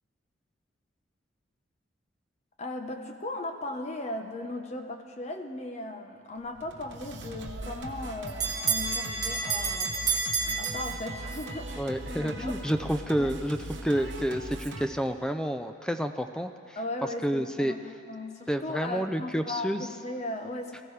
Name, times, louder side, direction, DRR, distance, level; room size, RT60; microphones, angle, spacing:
voice 1, 2.6-9.9 10.6-12.5 13.2-13.3 16.8-17.8 18.1-20.8, left 2 dB, 35° left, 4 dB, 0.9 m, -37 dB
Singing, 6.5-14.9, right 2 dB, 65° right, 1.0 m, -40 dB
Bell, 7.5-11.5, right 4 dB, 20° right, 1.6 m, -30 dB
voice 2, 11.8-16.8 17.2-17.7 18.5-19.9, equal, 5° left, 7 dB, 0.4 m, -29 dB
22.5 x 14.5 x 3.3 m, 2.4 s
head